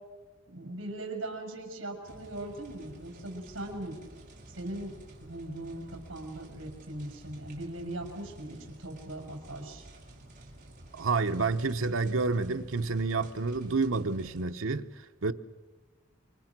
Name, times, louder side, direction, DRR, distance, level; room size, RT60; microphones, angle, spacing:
voice 1, 0.5-3.9 4.6-4.9 5.2-9.8, right 1 dB, 65° right, 5.7 m, -39 dB
sound 1, 2.0-14.4, right 1 dB, 40° right, 5.0 m, -51 dB
voice 2, 10.9-14.9 15.2-15.3, right 4 dB, 80° right, 1.0 m, -29 dB
27.5 x 24.5 x 6.1 m
head